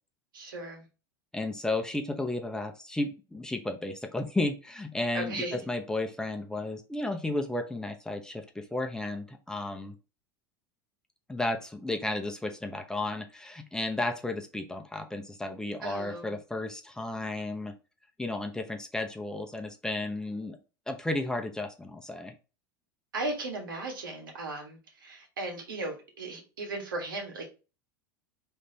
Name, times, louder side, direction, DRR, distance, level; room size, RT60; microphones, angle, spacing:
voice 1, 0.3-0.9 5.1-5.6 15.8-16.3 23.1-27.5, right 2 dB, 85° right, 2 dB, 1.7 m, -36 dB
voice 2, 1.3-10.0 11.3-17.7 18.2-20.6 20.9-22.3, left 2 dB, 5° left, 4 dB, 0.8 m, -33 dB
5.0 x 3.4 x 2.9 m, 0.32 s
hypercardioid pair, 85°, 11 cm